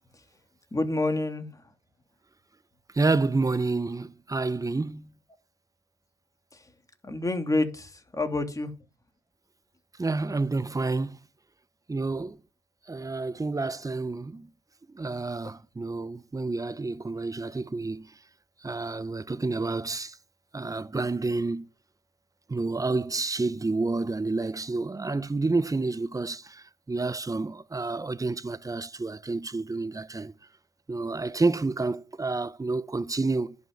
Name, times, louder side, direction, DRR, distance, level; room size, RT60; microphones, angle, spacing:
voice 1, 0.7-1.5 7.0-8.7, left 2 dB, 15° left, 3.0 m, -28 dB
voice 2, 2.9-5.1 10.0-11.2 11.9-12.4 12.9-14.5 14.9-18.1 18.6-20.2 20.5-21.7 22.5-30.3 30.9-33.6, right 3 dB, 15° right, 0.8 m, -29 dB
11.0 x 7.2 x 9.5 m
cardioid pair, 90°, 20 cm